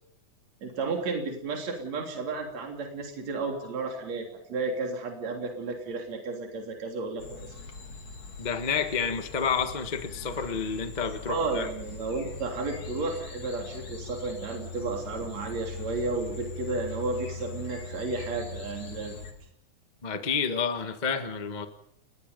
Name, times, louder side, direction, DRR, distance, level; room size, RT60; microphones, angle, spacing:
voice 1, 0.6-7.6 11.3-19.1, right 3 dB, 60° right, 2 dB, 4.5 m, -32 dB
sound 1, 7.2-19.3, left 4 dB, 55° left, 4.0 m, -41 dB
voice 2, 8.4-11.7 20.0-21.7, left 6 dB, 25° left, 7 dB, 0.9 m, -29 dB
30.0 x 21.5 x 5.3 m, 0.69 s
omnidirectional pair, 3.5 m